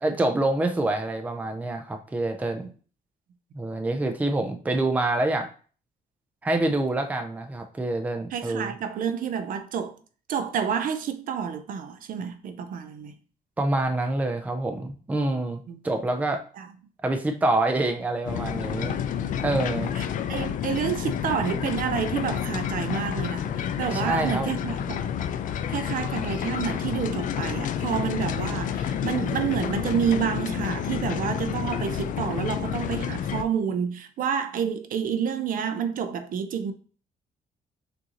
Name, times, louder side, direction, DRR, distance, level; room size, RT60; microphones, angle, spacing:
voice 1, 0.0-2.6 3.5-5.5 6.4-8.7 13.6-16.4 17.0-19.0 19.4-19.9 23.9-24.5, right 2 dB, 10° right, 0.4 m, -26 dB
voice 2, 8.3-10.0 10.3-13.1 15.7-15.8 16.6-16.7 19.9-25.0 25.7-36.7, right 7 dB, 60° right, 0.5 m, -29 dB
sound 1, 18.2-33.4, left 9 dB, 55° left, 0.4 m, -29 dB
6.2 x 2.7 x 2.9 m
cardioid pair, 160°, 16 cm